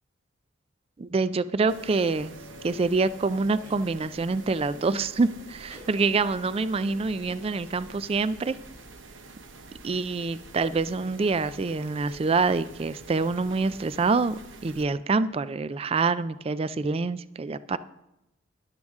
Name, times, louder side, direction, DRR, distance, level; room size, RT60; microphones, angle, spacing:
voice 1, 1.0-2.3 2.6-8.6 9.8-17.8, right 4 dB, 30° right, 15 dB, 0.3 m, -26 dB
sound 1, 1.7-14.8, right 3 dB, 70° right, 0.9 m, -46 dB
sound 2, 3.6-3.9 5.2-5.3 5.7-5.9 7.2-7.9, equal, 15° right, 1.9 m, -51 dB
12.5 x 11.5 x 3.6 m, 0.89 s
head